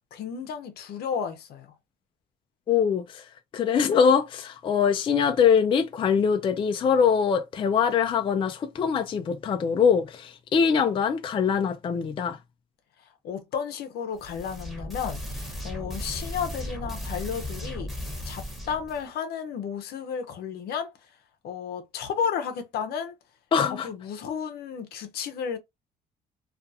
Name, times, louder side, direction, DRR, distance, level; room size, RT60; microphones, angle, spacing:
voice 1, 0.1-1.7 13.2-17.9 18.2-20.9 21.4-23.1 23.6-25.6, left 7 dB, 70° left, 0.7 m, -33 dB
voice 2, 2.7-3.2 3.5-12.4 23.5-23.9, left 6 dB, 30° left, 0.4 m, -23 dB
sound 1, 14.2-19.0, left 1 dB, ahead, 1.0 m, -36 dB
2.4 x 2.3 x 2.6 m
cardioid pair, 110°, 17 cm